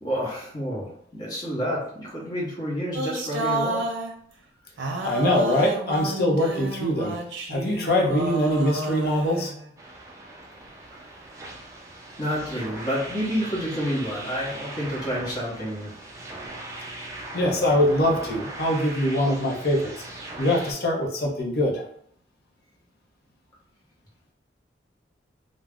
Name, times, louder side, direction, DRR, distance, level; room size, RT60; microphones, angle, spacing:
voice 1, 0.0-3.9 12.2-16.0, equal, 20° left, -6 dB, 0.8 m, -29 dB
sound 1, 2.9-4.2 4.8-9.7, right 2 dB, 85° right, 0.5 m, -30 dB
voice 2, 5.0-7.2 7.5-9.5 17.3-19.9 20.4-21.8, left 1 dB, 55° left, 0 dB, 0.6 m, -23 dB
sound 2, 9.8-20.7, right 2 dB, 15° right, 0.3 m, -39 dB
2.3 x 2.0 x 3.4 m, 0.66 s
head